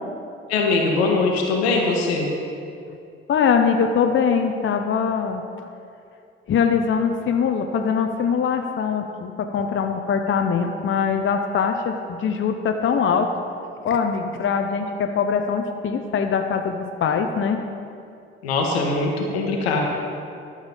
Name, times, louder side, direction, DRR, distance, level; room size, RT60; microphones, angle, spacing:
voice 1, 0.5-2.3 18.4-19.8, left 3 dB, 80° left, 0 dB, 1.4 m, -21 dB
voice 2, 3.3-5.4 6.5-13.3 13.8-17.6, left 6 dB, 40° left, 5 dB, 0.8 m, -22 dB
12.0 x 6.5 x 5.5 m, 2.5 s
figure-of-eight pair, 50°, 31 cm